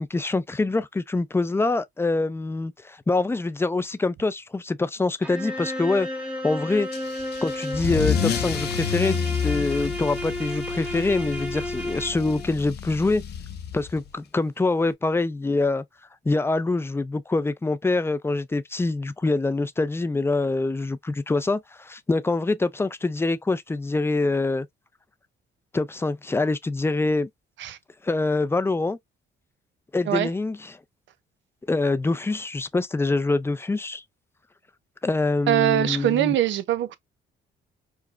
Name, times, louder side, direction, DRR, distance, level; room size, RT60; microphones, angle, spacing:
voice 1, 0.0-6.1 6.4-6.9 7.4-13.2 13.7-15.8 16.3-24.7 25.7-27.3 28.0-29.0 29.9-30.8 31.7-34.0 35.0-36.3, left 3 dB, 10° left, 0.4 m, -25 dB
sound 1, 5.2-12.5, left 1 dB, 5° right, 0.9 m, -32 dB
Car / Engine starting / Accelerating revving vroom, 6.9-14.1, left 8 dB, 55° left, 0.7 m, -30 dB
voice 2, 35.5-37.0, right 13 dB, 70° right, 0.6 m, -22 dB
4.8 x 2.1 x 2.4 m
cardioid pair, 90°, 20 cm